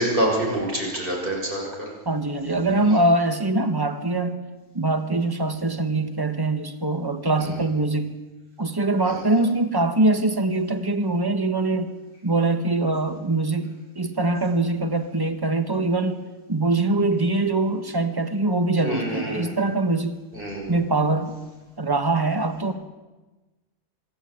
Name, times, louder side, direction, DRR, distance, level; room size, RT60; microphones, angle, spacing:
voice 1, 0.0-1.9 9.1-9.2 18.8-19.5 20.3-20.8, right 1 dB, 35° right, -2 dB, 6.5 m, -26 dB
voice 2, 2.0-4.4 4.7-8.2 8.6-12.0 12.2-20.2 20.7-21.4 21.8-22.7, right 2 dB, 15° right, 8 dB, 1.4 m, -23 dB
25.0 x 11.5 x 9.3 m, 1.2 s
omnidirectional pair, 1.6 m